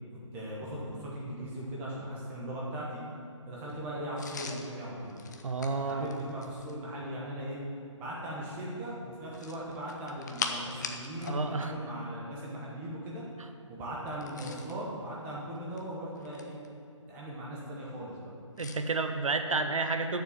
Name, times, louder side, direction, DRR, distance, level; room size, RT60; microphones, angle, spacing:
voice 1, 0.3-3.0 3.5-5.2 5.8-7.6 8.0-13.2 13.7-16.6 17.1-18.3, right 1 dB, 10° right, -5 dB, 1.2 m, -38 dB
sound 1, 4.2-6.8 9.3-11.4 11.7-11.8 14.1-14.8 15.6-16.7 18.6-18.8, left 4 dB, 35° left, 0.7 m, -41 dB
voice 2, 5.4-6.1 11.2-11.7 18.6-20.2, right 3 dB, 90° right, 7 dB, 0.8 m, -30 dB
7.4 x 7.1 x 7.3 m, 2.4 s
hypercardioid pair, 165°, 16 cm